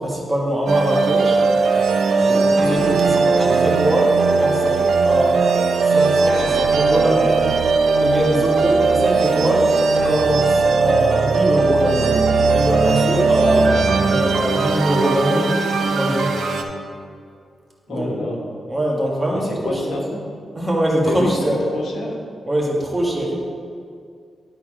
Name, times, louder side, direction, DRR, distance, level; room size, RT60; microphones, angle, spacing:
voice 1, 0.0-1.4 2.3-5.4 5.9-7.4 7.9-12.2 12.5-15.5 15.8-16.3 17.9-18.1 18.7-19.9 20.5-21.6 22.5-23.4, equal, 15° right, -3 dB, 1.6 m, -22 dB
sound 1, 0.7-16.6, right 4 dB, 85° right, 0.6 m, -18 dB
voice 2, 17.9-18.4 19.3-20.2 21.0-21.4 21.7-22.2, left 2 dB, 90° left, -1 dB, 1.3 m, -28 dB
11.0 x 4.1 x 5.0 m, 2.3 s
wide cardioid pair, 130°, 0 cm